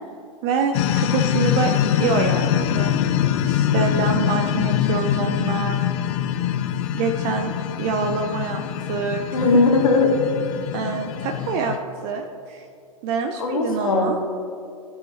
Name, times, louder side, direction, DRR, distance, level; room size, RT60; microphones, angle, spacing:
voice 1, 0.4-2.9 3.5-5.8 6.9-9.2 10.7-11.7 12.0-12.7 13.0-14.2, right 5 dB, 50° right, 4 dB, 0.7 m, -26 dB
sound 1, 0.7-11.8, left 10 dB, 50° left, 0.6 m, -23 dB
voice 2, 9.3-10.2 13.4-14.3, left 3 dB, 75° left, 1 dB, 1.4 m, -19 dB
14.0 x 5.7 x 2.9 m, 2.4 s
hypercardioid pair, 100°, 18 cm